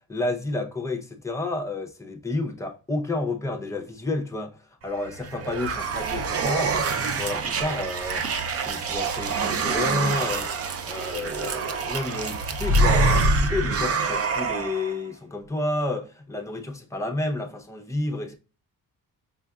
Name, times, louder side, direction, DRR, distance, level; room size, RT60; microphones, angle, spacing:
voice 1, 0.1-4.6 4.8-6.9 7.2-8.3 8.6-10.5 10.8-18.3, left 2 dB, 10° left, 0.7 m, -30 dB
sound 1, 5.0-15.0, right 3 dB, 45° right, 0.5 m, -25 dB
5.5 x 2.5 x 2.3 m
cardioid pair, 110°, 35 cm